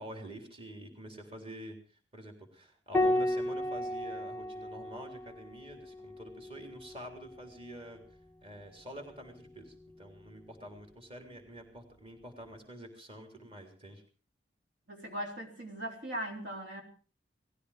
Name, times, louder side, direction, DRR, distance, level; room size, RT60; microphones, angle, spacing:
voice 1, 0.0-8.0 8.4-14.0, right 1 dB, 30° right, 4 dB, 3.7 m, -47 dB
Piano, 2.9-7.8 9.4-10.2, left 1 dB, 10° left, 1.1 m, -34 dB
voice 2, 14.9-16.8, equal, 75° right, 2 dB, 3.5 m, -39 dB
19.5 x 15.0 x 5.0 m, 0.38 s
head